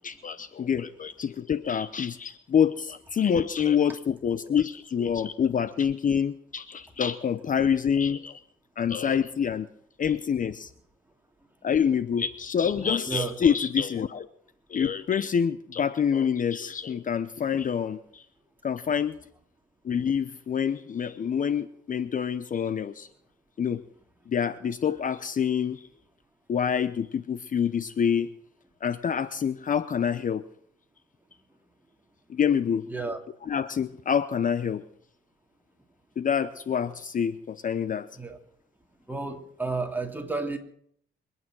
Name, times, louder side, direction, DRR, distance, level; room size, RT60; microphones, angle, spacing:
voice 1, 0.0-8.4 8.8-9.7 10.0-10.7 11.6-14.3 14.7-18.2 18.6-19.2 19.8-23.1 23.6-23.8 24.3-25.8 26.5-28.3 28.8-30.4 32.3-32.8 33.5-34.8 36.2-38.1, left 7 dB, 40° left, 15 dB, 0.7 m, -26 dB
voice 2, 39.1-40.6, right 3 dB, 10° right, 3 dB, 2.8 m, -31 dB
25.0 x 9.1 x 6.2 m, 0.65 s
cardioid pair, 90°, 20 cm